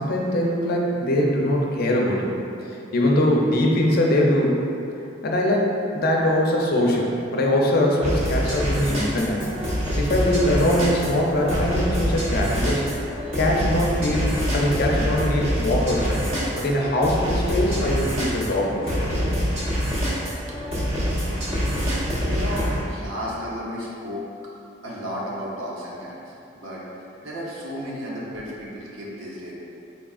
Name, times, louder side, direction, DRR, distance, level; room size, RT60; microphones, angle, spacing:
voice 1, 0.0-2.3 2.9-4.6 5.2-9.5 9.9-12.8 13.3-16.2 16.6-19.1, left 1 dB, 50° left, -1 dB, 0.5 m, -22 dB
sound 1, 8.0-22.8, equal, 30° right, 0.9 m, -25 dB
Bus / Engine, 9.2-14.3, equal, 15° left, 0.9 m, -39 dB
voice 2, 21.0-24.2 24.8-26.2 26.5-29.5, equal, 85° right, -5 dB, 0.9 m, -34 dB
4.1 x 3.5 x 2.4 m, 2.6 s
head